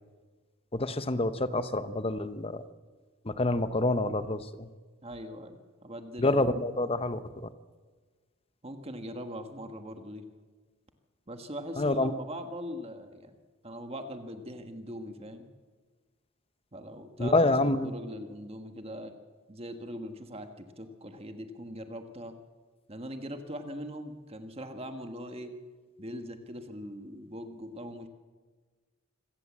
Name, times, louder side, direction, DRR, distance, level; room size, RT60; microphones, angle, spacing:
voice 1, 0.7-2.6 3.2-4.7 6.2-7.2 11.8-12.1 17.2-17.9, left 2 dB, 25° left, 12 dB, 0.9 m, -27 dB
voice 2, 5.0-6.5 8.6-10.2 11.3-13.4 13.6-15.5 16.7-19.1 19.5-22.4 22.9-25.5 26.0-28.1, equal, 30° right, 7 dB, 1.5 m, -41 dB
25.5 x 17.0 x 7.5 m, 1.4 s
head